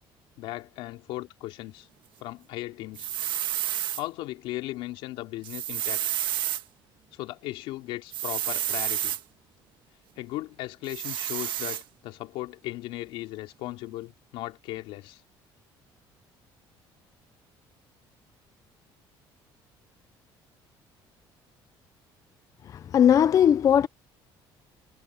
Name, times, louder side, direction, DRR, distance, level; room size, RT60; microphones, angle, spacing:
voice 1, 0.4-1.9 2.2-3.1 4.0-6.0 7.1-9.2 10.2-15.2, left 17 dB, 90° left, 2.9 m, -37 dB
sound 1, 3.0-4.0 5.4-6.6 8.1-9.2 10.9-11.8, right 12 dB, 60° right, 1.7 m, -30 dB
voice 2, 22.7-23.9, left 9 dB, 40° left, 0.5 m, -19 dB
cardioid pair, 135°, 9 cm